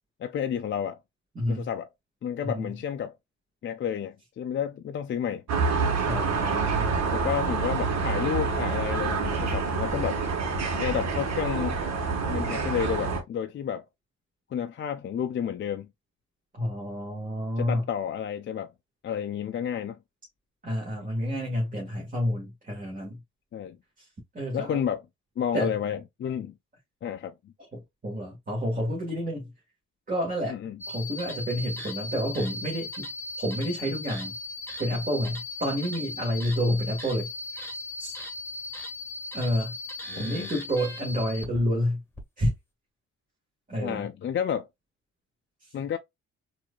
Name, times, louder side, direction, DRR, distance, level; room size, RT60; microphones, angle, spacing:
voice 1, 0.2-1.0 1.5-1.9 2.2-3.1 3.6-5.4 7.1-10.2 10.8-11.8 12.3-13.9 14.5-15.9 17.6-18.7 19.0-20.0 23.5-23.8 24.5-25.0 25.4-26.5 27.0-27.3 30.5-30.8 40.1-40.5 43.8-44.7 45.7-46.0, left 8 dB, 40° left, 0.4 m, -31 dB
voice 2, 1.3-1.7 2.4-2.7 6.0-7.0 16.5-17.8 20.6-23.2 24.0-24.1 24.3-24.8 25.5-25.7 27.7-29.5 30.1-30.6 30.9-33.1 33.4-34.3 34.8-37.3 38.0-38.2 39.3-39.7 40.2-42.0 42.4-42.5 43.7-44.0 45.6-45.7, equal, 25° right, 1.7 m, -29 dB
sound 1, 5.5-13.2, right 4 dB, 60° right, 1.3 m, -27 dB
sound 2, 30.8-41.6 42.1-42.2, left 2 dB, 10° left, 1.5 m, -38 dB
4.6 x 2.7 x 2.3 m
cardioid pair, 90°, 30 cm